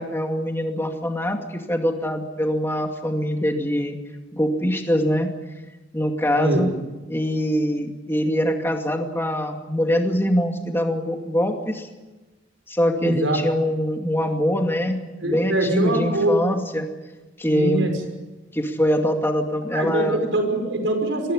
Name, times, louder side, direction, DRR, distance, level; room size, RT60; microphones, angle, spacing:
voice 1, 0.0-4.0 4.3-5.3 5.9-6.7 7.1-11.9 12.7-16.9 17.4-17.9 18.5-20.2, equal, 15° left, 4 dB, 2.4 m, -23 dB
voice 2, 13.0-13.4 15.2-16.4 17.5-17.9 19.7-21.3, right 1 dB, 85° right, 4 dB, 5.7 m, -23 dB
23.0 x 16.5 x 9.7 m, 1.1 s
head